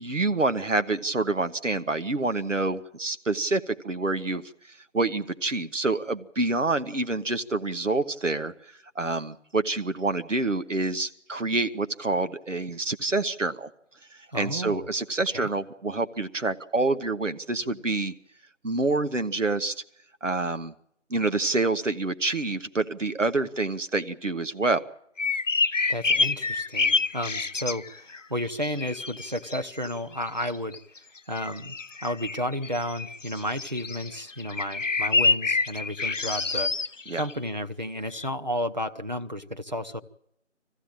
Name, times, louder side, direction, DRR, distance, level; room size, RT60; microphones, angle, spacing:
voice 1, 0.0-4.4 4.7-8.5 8.9-13.7 14.1-18.1 18.6-19.7 20.2-20.7 21.1-24.8 37.1-37.3, right 3 dB, 90° right, 10 dB, 1.2 m, -27 dB
voice 2, 14.3-14.9 15.3-15.5 25.9-30.8 31.3-36.7 37.1-40.0, equal, 35° right, 7 dB, 0.8 m, -32 dB
sound 1, 25.2-28.2 28.5-29.9 30.3-31.0 31.4-37.3 38.1-38.3, left 4 dB, 85° left, 0.8 m, -27 dB
21.0 x 15.0 x 8.9 m, 0.74 s
figure-of-eight pair, 170°, 36 cm